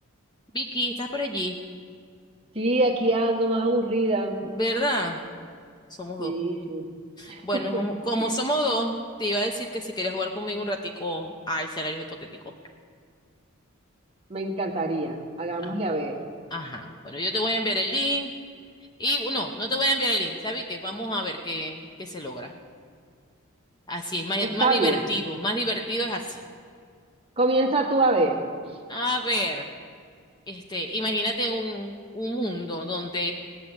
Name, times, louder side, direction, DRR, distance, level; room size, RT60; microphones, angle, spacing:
voice 1, 0.5-1.6 4.4-5.2 6.0-6.3 7.2-8.9 9.2-12.0 15.6-15.8 16.5-18.3 19.0-22.5 23.9-26.4 28.9-29.7 30.5-33.3, equal, 20° left, 3 dB, 0.8 m, -28 dB
voice 2, 2.5-4.4 6.2-6.8 7.3-7.4 7.7-7.8 14.3-16.2 24.4-25.0 27.4-28.4, right 2 dB, 25° right, 0 dB, 1.6 m, -24 dB
17.0 x 7.6 x 9.8 m, 2.2 s
head